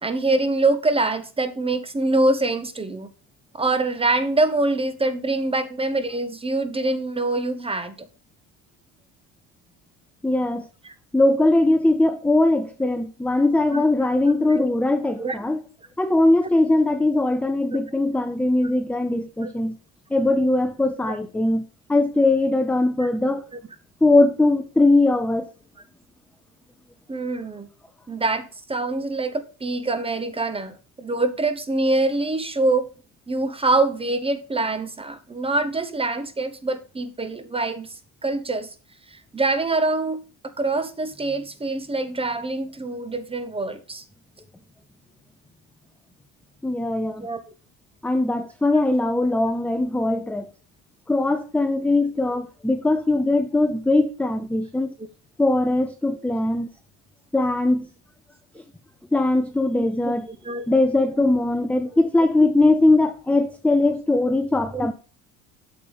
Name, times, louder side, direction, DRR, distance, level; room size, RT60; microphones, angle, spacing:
voice 1, 0.0-3.1 3.6-8.1 10.8-10.9 13.7-13.9 14.5-14.7 15.2-15.4 16.4-16.5 19.4-19.5 21.0-21.2 23.0-23.1 23.5-23.6 27.1-27.7 28.1-32.9 33.3-37.9 38.2-38.7 39.1-40.2 40.6-44.0 47.2-47.4 55.0-55.1 59.7-60.7 61.1-61.3 61.9-62.1 64.7-64.9, right 2 dB, 15° right, 0.9 m, -25 dB
voice 2, 10.2-10.7 11.1-15.6 16.0-19.8 20.1-21.6 21.9-23.4 24.0-25.5 46.6-47.3 48.0-50.5 51.1-54.9 55.4-56.7 57.3-57.9 59.1-60.3 60.7-64.9, left 2 dB, 5° left, 0.5 m, -20 dB
8.5 x 6.9 x 3.4 m
supercardioid pair, 100°, 38 cm